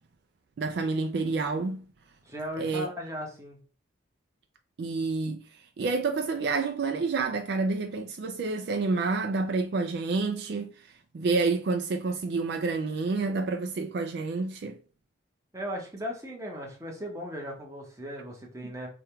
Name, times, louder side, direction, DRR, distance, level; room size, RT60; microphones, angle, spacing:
voice 1, 0.6-1.8 2.6-2.9 4.8-5.4 5.8-14.8, right 3 dB, 60° right, 0.3 m, -29 dB
voice 2, 2.2-3.6 15.5-18.9, equal, 15° right, 0.9 m, -37 dB
3.4 x 2.3 x 4.3 m
head